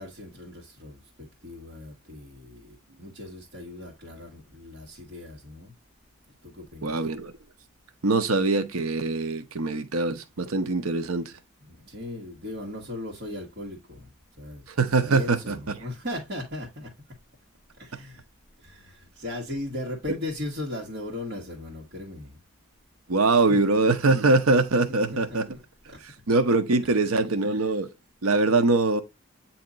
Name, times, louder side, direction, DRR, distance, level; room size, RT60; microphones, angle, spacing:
voice 1, 0.0-5.7 6.4-6.9 11.6-14.1 14.4-14.7 14.9-16.9 17.8-18.2 18.6-22.4 23.5-23.7 24.9-25.2, left 1 dB, 45° right, 1.6 m, -38 dB
voice 2, 6.8-7.3 8.0-11.3 14.8-15.8 23.1-25.6 26.3-27.9 28.2-29.0, right 3 dB, 85° right, 0.8 m, -23 dB
8.6 x 2.9 x 3.9 m
head